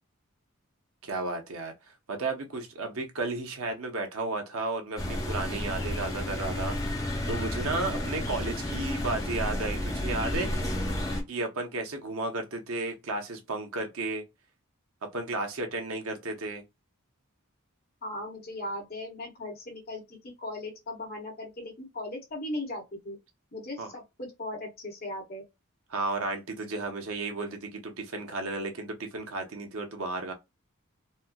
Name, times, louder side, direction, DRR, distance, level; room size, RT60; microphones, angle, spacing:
voice 1, 1.0-1.7 2.1-10.5 11.3-14.2 15.1-16.6 23.8-23.9 25.9-30.3, right 2 dB, 85° right, 0.9 m, -33 dB
sound 1, 5.0-11.2, left 1 dB, 15° left, 0.9 m, -31 dB
voice 2, 18.0-23.2 23.5-25.4, left 1 dB, 45° left, 1.5 m, -38 dB
4.2 x 2.1 x 2.2 m
head